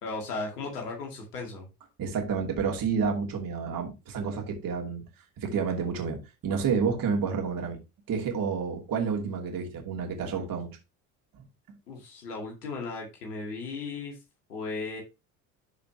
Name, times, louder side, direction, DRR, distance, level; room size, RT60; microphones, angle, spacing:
voice 1, 0.0-1.7 11.9-14.2 14.5-15.0, left 3 dB, 85° left, 2.2 m, -36 dB
voice 2, 2.0-5.0 5.4-7.8 8.1-10.7, right 6 dB, 45° right, 2.8 m, -29 dB
13.0 x 5.1 x 2.9 m
hypercardioid pair, 65°, 45 cm